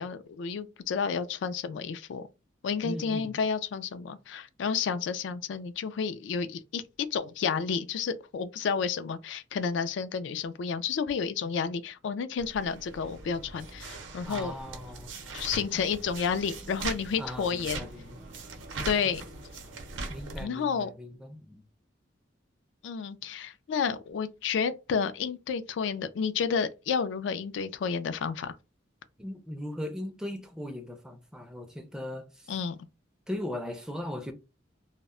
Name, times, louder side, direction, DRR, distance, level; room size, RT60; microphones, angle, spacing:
voice 1, 0.0-2.2 2.6-6.8 7.1-14.5 15.3-17.9 18.8-19.2 20.4-20.9 22.8-28.6 32.5-32.8, left 6 dB, 70° left, 0.3 m, -31 dB
voice 2, 2.8-3.4 14.3-15.1 17.2-18.2 18.8-19.1 20.1-21.6 29.2-32.2 33.3-34.3, left 1 dB, 5° right, 0.4 m, -38 dB
sound 1, 12.4-20.4, right 3 dB, 85° right, 0.6 m, -40 dB
2.1 x 2.0 x 3.6 m
head